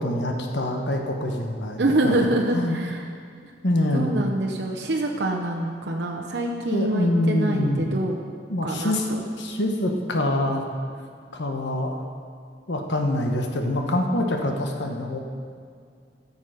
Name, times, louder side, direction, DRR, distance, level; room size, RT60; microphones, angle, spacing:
voice 1, 0.0-2.2 2.5-2.8 3.6-4.1 6.7-7.8 8.5-10.6 11.3-12.0 12.7-15.2, left 1 dB, 85° left, 2 dB, 1.2 m, -25 dB
voice 2, 1.8-3.0 3.9-8.2 8.6-9.2, right 1 dB, 70° right, 0 dB, 0.8 m, -25 dB
14.0 x 7.1 x 5.1 m, 2.2 s
head